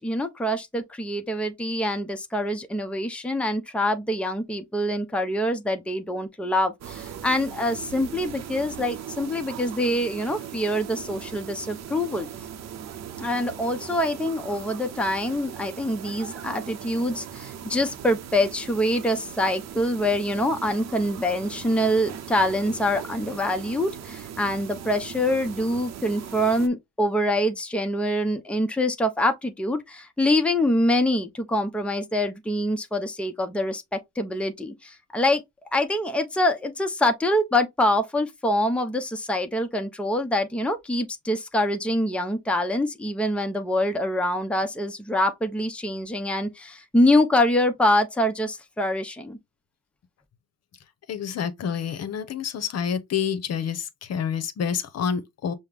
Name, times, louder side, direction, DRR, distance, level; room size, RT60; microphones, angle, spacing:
voice 1, 0.0-12.3 13.2-35.4 35.7-49.4, left 1 dB, 5° left, 0.7 m, -25 dB
sound 1, 6.8-26.7, right 9 dB, 60° right, 0.7 m, -39 dB
voice 2, 51.1-55.5, left 7 dB, 55° left, 0.8 m, -28 dB
5.5 x 2.1 x 3.3 m
cardioid pair, 90°, 30 cm